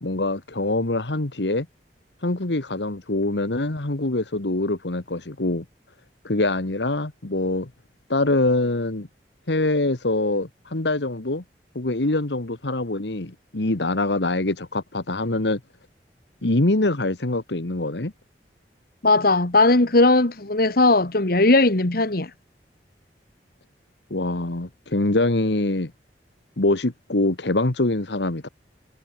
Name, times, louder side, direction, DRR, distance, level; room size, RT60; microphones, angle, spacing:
voice 1, 0.0-1.7 2.2-5.6 6.2-7.7 8.1-9.1 9.5-11.4 11.7-15.6 16.4-18.1 24.1-25.9 26.6-28.5, left 2 dB, 80° left, 1.6 m, -24 dB
voice 2, 19.0-22.3, left 2 dB, 55° left, 1.8 m, -18 dB
head